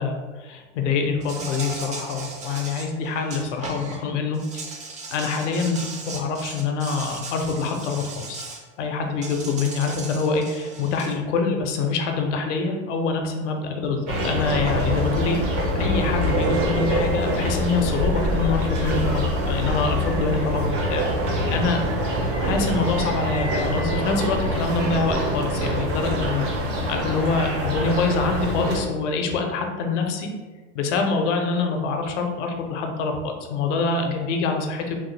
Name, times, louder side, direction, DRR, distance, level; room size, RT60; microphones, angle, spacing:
voice 1, 0.0-4.4 5.1-8.4 8.8-21.1 21.5-21.8 22.4-26.5 26.9-30.3 30.7-35.0, left 4 dB, 75° left, 4 dB, 0.7 m, -25 dB
Insect, 1.2-4.0 4.3-8.6 9.2-11.1, right 3 dB, 20° right, 0.4 m, -37 dB
sound 1, 14.1-28.8, equal, 75° right, 1.1 m, -24 dB
3.2 x 2.1 x 3.1 m, 1.3 s
supercardioid pair, 115°, 36 cm